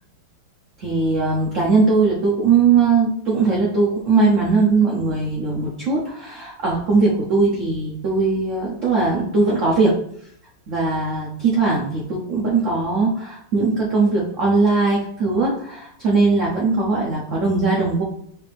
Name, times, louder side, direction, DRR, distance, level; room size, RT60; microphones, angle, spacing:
voice 1, 0.8-10.0 10.7-18.0, right 4 dB, 75° right, -3 dB, 0.7 m, -19 dB
4.7 x 2.5 x 3.3 m, 0.67 s
omnidirectional pair, 2.2 m